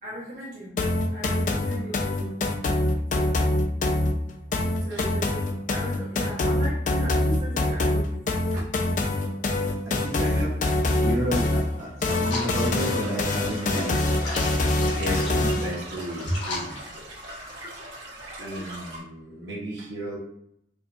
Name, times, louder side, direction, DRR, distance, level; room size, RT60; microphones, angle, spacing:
voice 1, 0.0-0.8 1.1-2.4 3.1-3.5 4.8-8.3 8.5-8.6, right 1 dB, 45° right, -7 dB, 1.0 m, -38 dB
sound 1, 0.8-15.8, left 2 dB, 45° left, 0.4 m, -25 dB
voice 2, 2.5-3.1 4.9-5.0 9.8-14.0 14.9-16.8 18.4-20.2, equal, 70° right, -4 dB, 1.2 m, -32 dB
sound 2, 12.2-17.6, left 3 dB, 85° left, 1.2 m, -38 dB
sound 3, 12.7-19.0, right 1 dB, 90° right, 1.3 m, -40 dB
4.9 x 2.1 x 2.6 m, 0.73 s
head